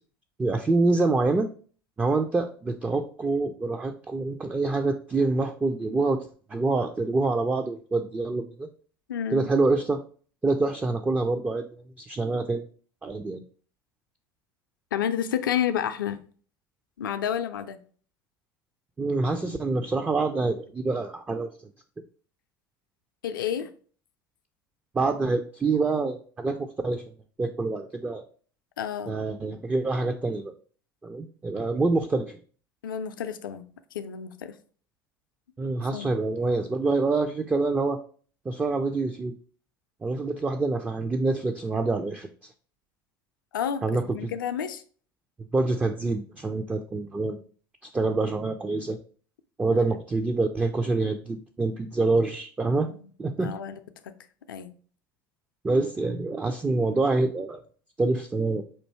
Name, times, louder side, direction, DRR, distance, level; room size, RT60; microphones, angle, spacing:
voice 1, 0.4-1.5 2.0-8.7 9.3-10.0 10.4-11.7 12.0-12.7 13.0-13.4 19.0-21.5 24.9-27.0 27.4-28.2 29.1-30.5 31.0-32.4 35.6-38.0 38.5-39.3 40.0-42.3 43.8-44.3 45.5-47.4 47.9-49.0 49.6-52.9 53.2-53.5 55.6-57.6 58.0-58.6, right 3 dB, 10° right, 5 dB, 0.3 m, -26 dB
voice 2, 9.1-9.5 14.9-16.2 17.0-17.8 23.2-23.7 28.8-29.1 32.8-33.6 33.9-34.5 35.9-36.1 43.5-44.8 52.9-53.1 53.4-54.1 54.5-54.7, left 9 dB, 70° left, 9 dB, 0.4 m, -30 dB
4.4 x 2.6 x 4.2 m, 0.43 s
figure-of-eight pair, 70°, 11 cm